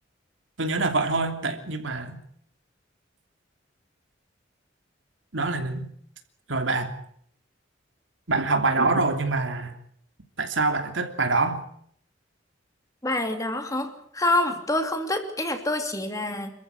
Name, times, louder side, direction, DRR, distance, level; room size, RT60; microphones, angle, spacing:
voice 1, 0.6-2.2 5.3-5.9 6.5-6.9 8.3-9.7 10.4-11.6, right 3 dB, 75° right, 6 dB, 3.1 m, -25 dB
voice 2, 13.0-16.5, left 2 dB, 15° left, 6 dB, 2.8 m, -26 dB
27.0 x 14.5 x 8.2 m, 0.65 s
head